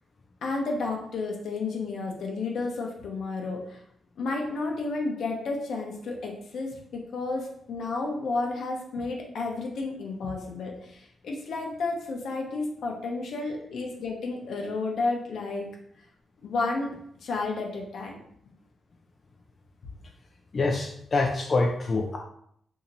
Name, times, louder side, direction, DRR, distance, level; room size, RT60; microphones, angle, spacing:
voice 1, 0.4-3.8 4.2-15.7 16.4-16.9 17.2-18.2, left 3 dB, 80° left, 0 dB, 0.8 m, -31 dB
voice 2, 20.5-22.2, left 3 dB, 50° left, 1 dB, 0.4 m, -25 dB
2.8 x 2.8 x 3.9 m, 0.69 s
cardioid pair, 75°, 0 cm